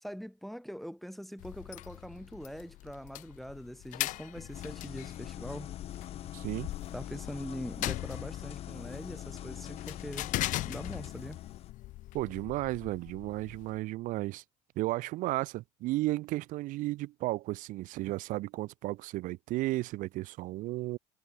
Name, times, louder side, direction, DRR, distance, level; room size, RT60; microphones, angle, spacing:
voice 1, 0.0-5.7 6.9-10.3 10.6-11.4, equal, ahead, 1.0 m, -43 dB
sound 1, 1.4-13.8, left 16 dB, 65° left, 1.4 m, -40 dB
sound 2, 4.5-11.7, left 11 dB, 45° left, 0.8 m, -43 dB
voice 2, 6.3-6.7 12.1-14.4 14.8-21.0, right 18 dB, 70° right, 1.1 m, -34 dB
cardioid pair, 125°, 14 cm